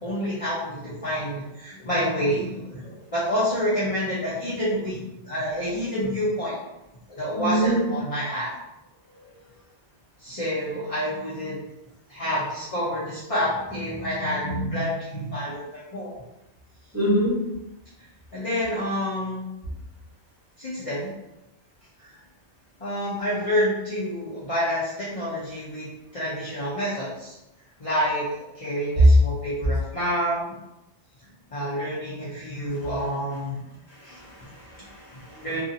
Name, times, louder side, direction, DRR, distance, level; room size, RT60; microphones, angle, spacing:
voice 1, 0.0-5.0 5.3-6.6 7.2-8.5 10.2-11.6 12.1-16.1 18.3-19.4 20.6-21.1 22.0-22.1 22.8-27.3 27.8-30.4 31.5-33.6 34.0-34.2 35.4-35.6, equal, 35° left, -8 dB, 0.6 m, -28 dB
voice 2, 7.4-7.9 16.9-17.3 34.1-35.5, right 1 dB, 15° right, -10 dB, 1.0 m, -26 dB
2.6 x 2.4 x 2.6 m, 0.93 s
omnidirectional pair, 1.2 m